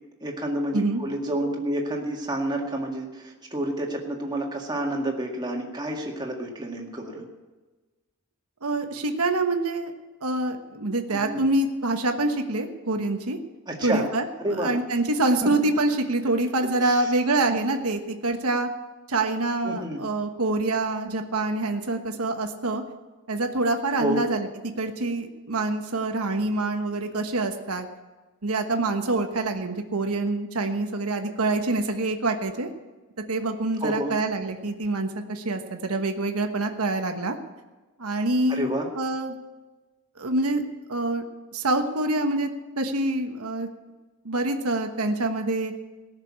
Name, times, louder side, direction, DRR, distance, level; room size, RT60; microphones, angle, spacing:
voice 1, 0.2-7.2 11.1-11.5 13.7-14.1 14.4-14.7 15.4-15.5 16.8-17.1 19.6-20.0 24.0-24.2 33.8-34.1 38.5-38.9, right 1 dB, 20° right, 0 dB, 2.0 m, -29 dB
voice 2, 8.6-9.9 10.2-13.4 13.8-18.7 19.1-22.8 23.3-24.5 24.8-27.9 28.4-32.7 33.3-37.4 38.0-38.7 39.0-39.4 40.2-40.6 40.9-41.2 41.5-42.5 42.8-43.7 44.2-45.7, right 2 dB, 85° right, 5 dB, 1.3 m, -26 dB
18.0 x 6.8 x 8.7 m, 1.2 s
head